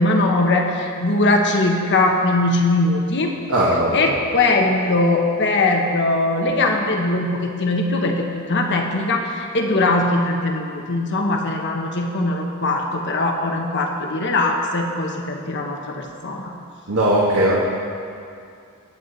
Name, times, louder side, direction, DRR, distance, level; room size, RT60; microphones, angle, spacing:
voice 1, 0.0-3.3 3.9-16.5, left 2 dB, 55° left, 2 dB, 1.2 m, -20 dB
voice 2, 3.5-4.1 16.9-17.6, right 1 dB, 70° right, -5 dB, 1.8 m, -18 dB
21.0 x 9.2 x 4.2 m, 2.4 s
head